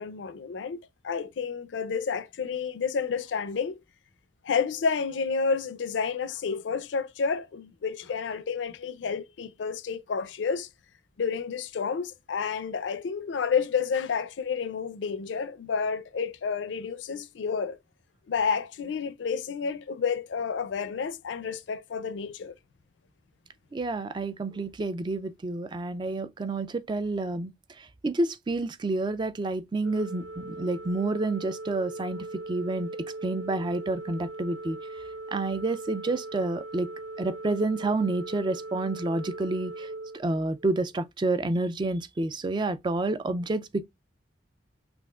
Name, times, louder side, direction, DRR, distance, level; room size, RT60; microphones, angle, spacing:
voice 1, 0.0-3.8 4.4-10.7 11.2-17.8 18.3-22.5, left 5 dB, 75° left, 0.4 m, -30 dB
voice 2, 23.7-27.5 27.8-32.9 33.2-34.8 35.3-36.9 37.2-43.9, right 2 dB, 25° right, 0.3 m, -29 dB
Organ, 29.8-40.9, right 2 dB, 70° right, 0.8 m, -40 dB
5.9 x 2.4 x 2.3 m
head